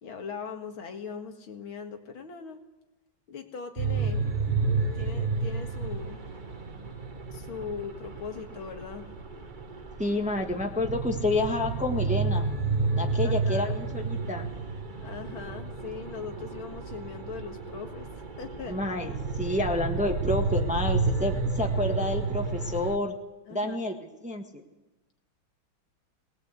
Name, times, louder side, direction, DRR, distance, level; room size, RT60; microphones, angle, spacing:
voice 1, 0.0-2.6 3.3-4.2 4.9-6.4 7.3-9.1 13.2-13.8 15.0-18.1 18.4-18.8 23.5-23.8, left 6 dB, 75° left, 4 dB, 2.6 m, -40 dB
sound 1, 3.8-23.0, right 4 dB, 30° right, 1.1 m, -31 dB
voice 2, 10.0-12.5 13.0-14.5 18.7-23.1 23.5-24.0 24.2-24.4, left 2 dB, 5° right, 4 dB, 1.3 m, -29 dB
19.5 x 19.5 x 8.3 m, 1.1 s
omnidirectional pair, 2.3 m